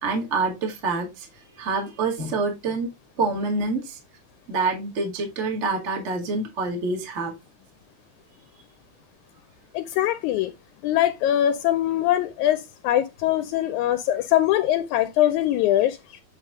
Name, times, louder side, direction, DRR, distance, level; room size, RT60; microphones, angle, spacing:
voice 1, 0.0-1.3 1.6-2.9 3.2-4.0 4.5-7.3, right 3 dB, 25° right, 1.8 m, -26 dB
voice 2, 9.7-10.5 10.8-16.2, left 12 dB, 80° left, 1.9 m, -22 dB
9.0 x 3.8 x 3.6 m
omnidirectional pair, 3.6 m